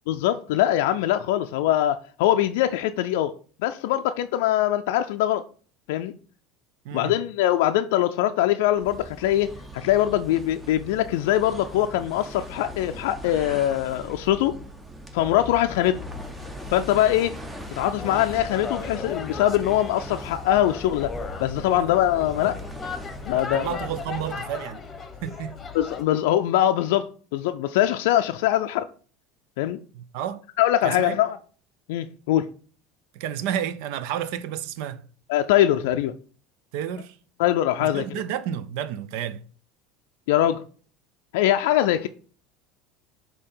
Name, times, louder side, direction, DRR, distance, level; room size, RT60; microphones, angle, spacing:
voice 1, 0.1-3.3 3.6-5.4 5.9-6.2 6.9-14.6 15.1-16.0 16.7-17.4 17.8-21.1 21.4-22.6 23.3-23.8 25.7-28.9 29.6-29.8 30.6-31.4 31.9-32.5 35.3-36.1 37.4-38.0 40.3-40.6 41.3-42.1, left 12 dB, 80° left, 0.4 m, -22 dB
sound 1, 8.7-24.5, right 1 dB, 10° right, 0.8 m, -40 dB
sound 2, 15.2-26.0, left 5 dB, 20° left, 1.1 m, -37 dB
voice 2, 23.3-24.8 25.2-25.6 29.9-30.4 30.8-31.2 33.1-35.1 36.7-37.2 37.8-39.4, right 10 dB, 75° right, 0.5 m, -31 dB
6.6 x 2.8 x 5.4 m
supercardioid pair, 115°, 0 cm